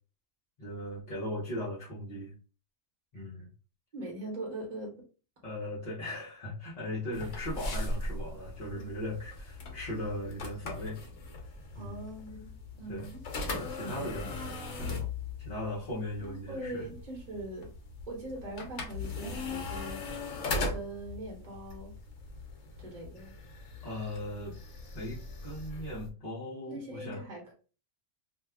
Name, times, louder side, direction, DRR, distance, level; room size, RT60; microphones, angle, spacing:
voice 1, 0.6-2.3 3.1-3.5 5.4-11.0 11.7-12.0 12.9-13.1 13.6-15.1 15.4-16.9 23.8-24.5 24.9-27.2, left 1 dB, 35° left, -8 dB, 0.9 m, -38 dB
voice 2, 3.9-5.0 7.2-7.3 8.7-8.9 11.7-13.2 13.5-14.3 16.2-17.7 18.1-22.0 22.8-23.3 26.6-27.5, right 1 dB, 35° right, -2 dB, 1.1 m, -42 dB
sound 1, 7.1-26.1, left 2 dB, 65° left, 1.0 m, -39 dB
2.7 x 2.3 x 3.4 m, 0.36 s
omnidirectional pair, 1.4 m